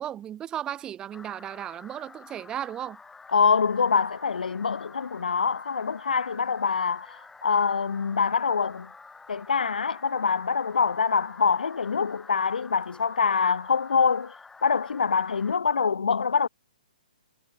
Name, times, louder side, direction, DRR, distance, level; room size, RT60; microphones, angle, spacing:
voice 1, 0.0-3.0, right 10 dB, 15° right, 0.7 m, -35 dB
sound 1, 1.1-15.6, left 4 dB, 5° left, 7.6 m, -49 dB
voice 2, 3.3-7.1 7.4-8.9 9.3-14.3 14.6-16.5, left 5 dB, 85° left, 0.5 m, -25 dB
hypercardioid pair, 140°, 5 cm